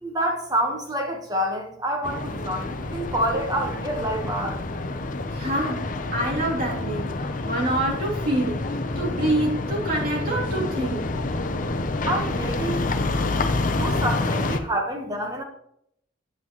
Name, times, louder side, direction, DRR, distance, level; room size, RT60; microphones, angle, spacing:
voice 1, 0.0-4.6 12.1-12.8 13.8-15.4, right 1 dB, 20° right, 2 dB, 1.2 m, -27 dB
sound 1, 2.0-14.6, left 2 dB, 45° left, 0.7 m, -28 dB
voice 2, 5.3-8.7 8.9-11.1 12.8-12.9, right 1 dB, 50° right, -4 dB, 3.0 m, -26 dB
9.5 x 7.7 x 3.1 m, 0.71 s
head